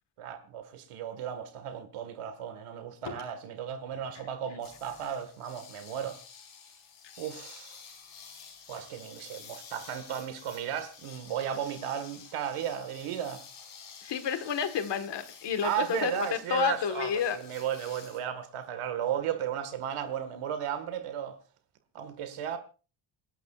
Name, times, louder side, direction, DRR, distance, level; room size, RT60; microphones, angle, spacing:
voice 1, 0.2-6.2 7.2-7.8 8.7-13.4 15.6-21.4 21.9-22.6, right 9 dB, 85° right, 1.8 m, -35 dB
sound 1, 3.0-3.2 4.6-18.2, left 6 dB, 75° left, 5.1 m, -50 dB
voice 2, 14.0-17.4, left 8 dB, 55° left, 1.6 m, -30 dB
28.5 x 11.5 x 2.4 m
cardioid pair, 145°, 50 cm